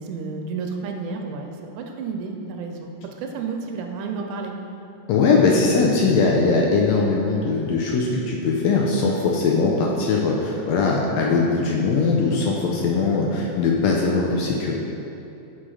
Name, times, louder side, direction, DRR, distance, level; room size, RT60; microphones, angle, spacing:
voice 1, 0.0-2.9 3.2-4.5, right 4 dB, 85° right, 3 dB, 2.1 m, -31 dB
voice 2, 5.1-14.8, left 4 dB, 85° left, -1 dB, 1.5 m, -20 dB
6.2 x 4.2 x 4.8 m, 2.9 s
omnidirectional pair, 3.6 m